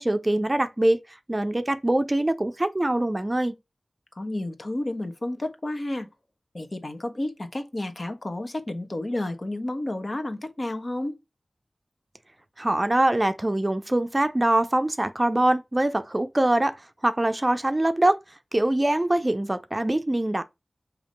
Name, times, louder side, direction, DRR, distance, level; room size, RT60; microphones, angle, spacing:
voice 1, 0.0-3.5 12.6-16.7 17.0-18.2 18.5-20.4, right 1 dB, 25° right, 0.6 m, -23 dB
voice 2, 4.1-6.1 6.5-11.2, left 1 dB, 45° left, 1.2 m, -31 dB
7.1 x 3.0 x 5.2 m
wide cardioid pair, 65°, 0 cm